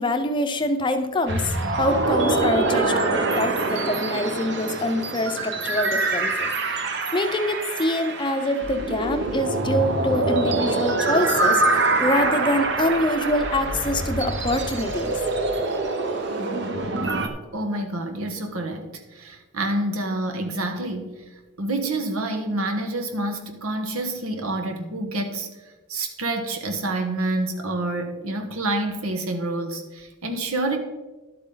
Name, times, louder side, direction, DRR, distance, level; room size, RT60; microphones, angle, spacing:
voice 1, 0.0-15.2, left 1 dB, 20° left, 7 dB, 0.6 m, -25 dB
sound 1, 1.3-17.3, right 2 dB, 55° right, 1.0 m, -25 dB
voice 2, 17.5-21.2 21.6-25.5 25.9-30.8, right 2 dB, 85° right, 6 dB, 1.4 m, -28 dB
11.5 x 8.2 x 3.9 m, 1.2 s
head